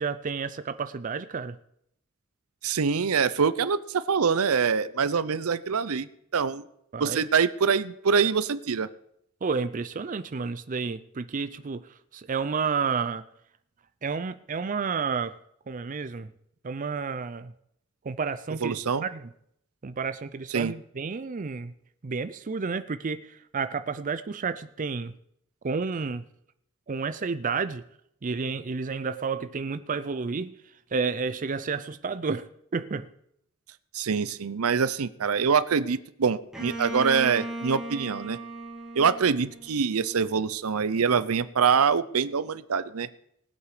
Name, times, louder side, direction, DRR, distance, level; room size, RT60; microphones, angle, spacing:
voice 1, 0.0-1.6 6.9-7.2 9.4-13.2 14.0-15.3 15.7-16.3 16.6-17.5 18.0-18.7 19.0-19.3 19.8-21.7 22.0-25.1 25.6-26.2 26.9-27.8 28.2-30.6 30.9-33.1, right 5 dB, 35° right, 11 dB, 0.5 m, -31 dB
voice 2, 2.6-6.1 6.3-6.6 7.0-8.9 18.6-19.0 20.5-20.7 33.9-38.4 38.9-43.1, right 6 dB, 80° right, 16 dB, 0.6 m, -25 dB
Bowed string instrument, 36.5-40.3, right 1 dB, ahead, 2.4 m, -37 dB
19.0 x 8.3 x 4.9 m, 0.73 s
head